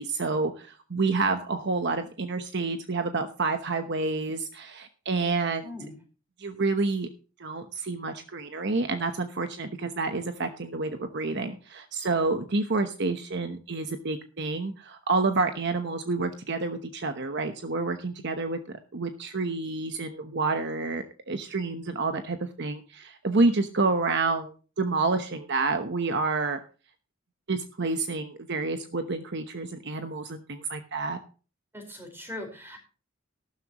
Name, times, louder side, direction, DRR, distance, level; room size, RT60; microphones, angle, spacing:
voice 1, 0.0-5.7 6.4-7.1 7.4-18.6 18.9-26.6 27.5-31.2, right 3 dB, 55° right, 7 dB, 1.0 m, -29 dB
voice 2, 5.6-5.9 31.7-32.8, left 1 dB, 10° right, 3 dB, 4.6 m, -40 dB
13.5 x 12.5 x 3.0 m, 0.35 s
head